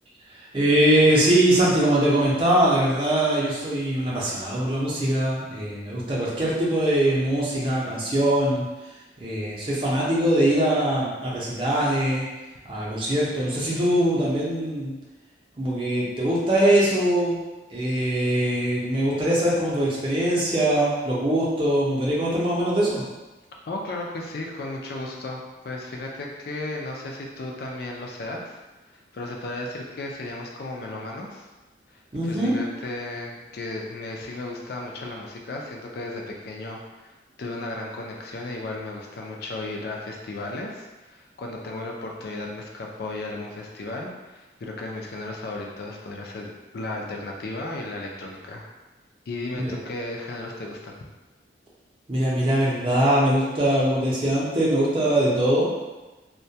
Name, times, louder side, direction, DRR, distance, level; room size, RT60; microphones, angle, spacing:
voice 1, 0.5-8.6 9.2-12.3 12.6-14.9 15.6-17.4 17.7-23.0 32.1-32.6 49.6-49.8 52.1-55.7, right 1 dB, 30° right, -6 dB, 0.5 m, -22 dB
voice 2, 23.7-28.6 28.9-31.5 31.9-48.7 49.3-51.0, left 2 dB, 55° left, 0 dB, 0.4 m, -35 dB
2.2 x 2.2 x 2.7 m, 1.2 s
head